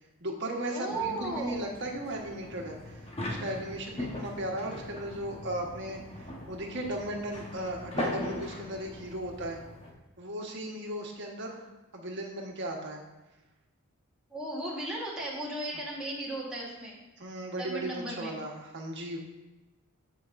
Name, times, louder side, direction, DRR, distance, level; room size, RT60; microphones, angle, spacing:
voice 1, 0.2-9.6 10.2-13.0 17.2-19.2, right 1 dB, 55° right, 0 dB, 1.4 m, -36 dB
voice 2, 0.7-1.7 14.3-17.0 17.6-18.4, right 2 dB, 5° right, -6 dB, 1.5 m, -36 dB
sound 1, 0.9-9.9, left 1 dB, 25° left, 1.1 m, -40 dB
15.5 x 5.2 x 2.6 m, 1.1 s
head